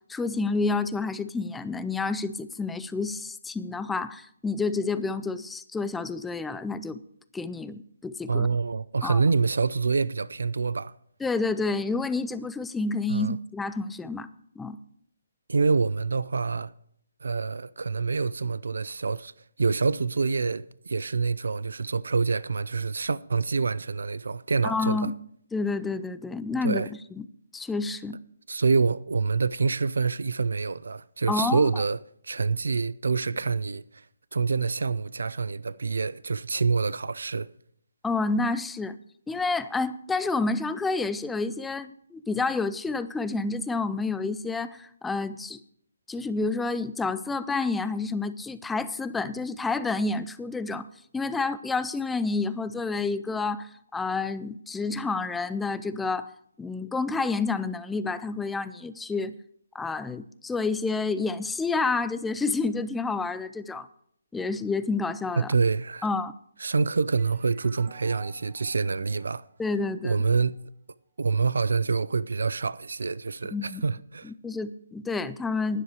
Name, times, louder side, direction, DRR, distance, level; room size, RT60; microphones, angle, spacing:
voice 1, 0.1-7.0 7.3-8.5 9.0-9.2 11.2-14.3 14.6-14.8 24.6-25.1 25.5-26.8 27.1-27.2 27.5-28.2 31.3-31.7 38.0-39.0 39.3-45.6 46.1-50.9 51.1-56.3 56.6-59.3 59.7-63.9 64.3-65.5 66.0-66.3 69.6-70.2 73.5-73.8 74.2-75.8, left 3 dB, 5° left, 0.3 m, -29 dB
voice 2, 8.3-10.9 13.1-13.4 15.5-16.7 17.2-19.3 19.6-25.1 26.6-26.9 28.5-32.0 32.2-33.8 34.3-37.5 65.4-66.1 66.6-69.4 70.0-70.5 71.2-74.3, right 4 dB, 80° right, 0.4 m, -26 dB
sound 1, 67.1-70.6, right 8 dB, 30° right, 1.2 m, -52 dB
12.0 x 10.0 x 4.8 m
hypercardioid pair, 160°, 0 cm